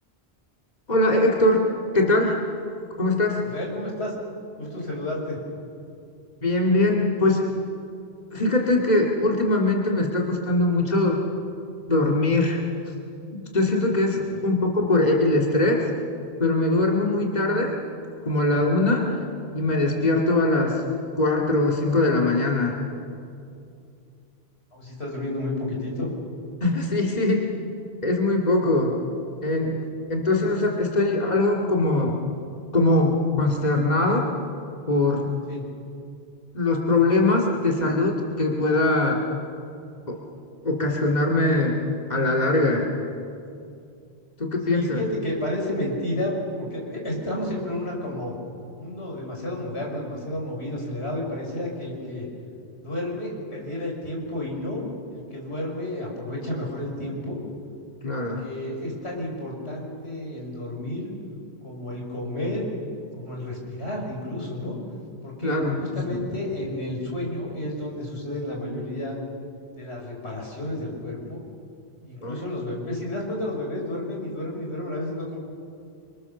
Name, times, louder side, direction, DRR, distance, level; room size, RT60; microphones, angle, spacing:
voice 1, 0.9-1.6 1.9-2.4 3.0-3.4 6.4-7.5 8.3-11.2 11.9-12.6 13.5-15.9 16.4-17.8 18.2-19.1 19.5-20.8 21.2-22.8 26.6-27.5 28.0-28.9 29.4-29.8 30.1-32.2 32.7-34.3 34.9-35.3 36.5-39.2 40.1-40.2 40.6-41.8 42.1-42.9 44.4-45.0 58.0-58.4 65.4-65.8 66.1-66.3 72.2-72.4, left 2 dB, 40° left, -1 dB, 2.6 m, -21 dB
voice 2, 3.4-4.1 4.6-5.4 14.3-14.5 24.7-26.1 35.5-35.7 44.7-48.3 48.8-52.3 52.8-57.4 58.1-61.1 61.6-62.6 63.1-64.8 65.2-69.2 69.7-71.4 72.0-75.4, left 1 dB, 85° left, -1 dB, 6.5 m, -31 dB
29.0 x 25.0 x 7.2 m, 2.5 s
omnidirectional pair, 1.1 m